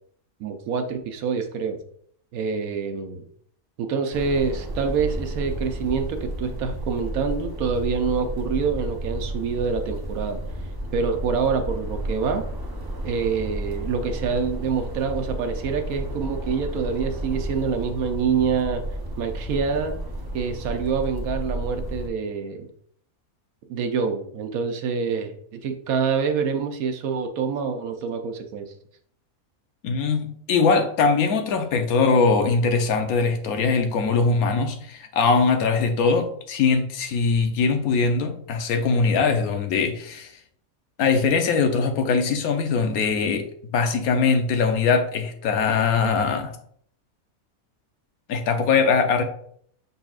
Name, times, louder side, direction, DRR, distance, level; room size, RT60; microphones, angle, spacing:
voice 1, 0.4-1.8 2.3-3.2 3.8-10.4 10.9-12.4 13.0-18.8 19.2-19.9 20.3-22.7 23.7-25.4 25.6-28.7, right 5 dB, 80° right, 1.0 m, -26 dB
sound 1, 4.1-22.1, right 1 dB, 25° right, 0.5 m, -32 dB
voice 2, 29.8-40.3 41.0-43.5 43.7-46.5 48.3-49.2, left 4 dB, 85° left, 1.2 m, -21 dB
5.5 x 4.0 x 2.4 m
omnidirectional pair, 1.5 m